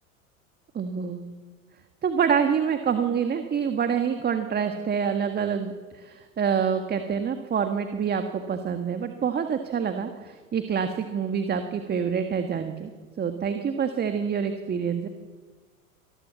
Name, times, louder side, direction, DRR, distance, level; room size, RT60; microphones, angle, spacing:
voice 1, 0.7-1.3 2.0-12.9 13.2-15.1, right 7 dB, 25° right, 7 dB, 1.8 m, -26 dB
26.0 x 20.0 x 7.1 m, 1.5 s
figure-of-eight pair, 85°, 42 cm